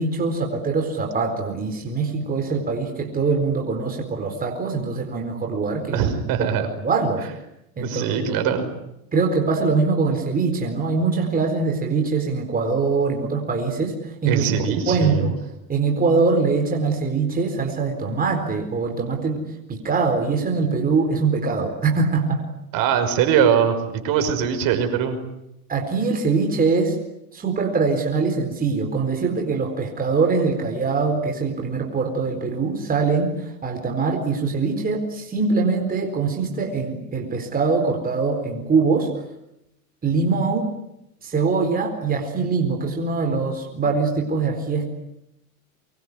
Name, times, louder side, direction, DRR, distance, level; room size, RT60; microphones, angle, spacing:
voice 1, 0.0-6.1 6.4-7.2 7.8-8.5 9.1-14.6 14.9-15.4 15.7-22.4 25.7-27.0 27.3-39.1 40.0-40.7 41.2-44.9, right 4 dB, 20° right, 3 dB, 4.3 m, -23 dB
voice 2, 5.9-6.7 7.8-8.7 14.3-15.3 22.7-25.2, right 8 dB, 50° right, 8 dB, 5.8 m, -21 dB
24.5 x 23.0 x 9.8 m, 0.85 s
supercardioid pair, 130°, 43 cm